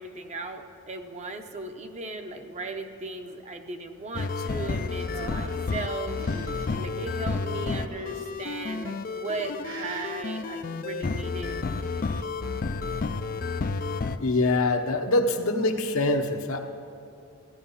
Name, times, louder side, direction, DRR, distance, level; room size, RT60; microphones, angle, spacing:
voice 1, 0.0-11.6, right 3 dB, 30° right, 5 dB, 0.8 m, -37 dB
sound 1, 4.1-14.2, left 4 dB, 40° left, 0.4 m, -31 dB
sound 2, 5.0-6.7 7.6-8.4 9.0-9.4 9.6-10.2 11.6-12.3, right 3 dB, 60° right, 1.2 m, -43 dB
voice 2, 14.2-16.6, left 2 dB, 70° left, 4 dB, 1.0 m, -24 dB
14.5 x 10.5 x 5.6 m, 2.6 s
head